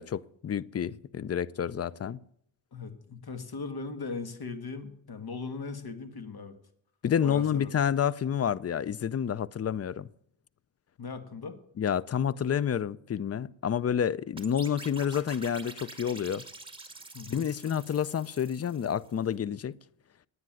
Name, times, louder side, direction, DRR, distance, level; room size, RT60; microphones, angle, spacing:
voice 1, 0.0-2.2 7.0-10.1 11.8-16.4 17.3-19.7, left 8 dB, 35° left, 0.5 m, -29 dB
voice 2, 2.7-6.5 7.2-7.7 11.0-11.6 17.1-17.5, left 4 dB, 50° left, 1.8 m, -38 dB
sound 1, 14.4-19.2, right 3 dB, 10° right, 2.0 m, -47 dB
9.8 x 9.5 x 9.3 m
cardioid pair, 70°, 47 cm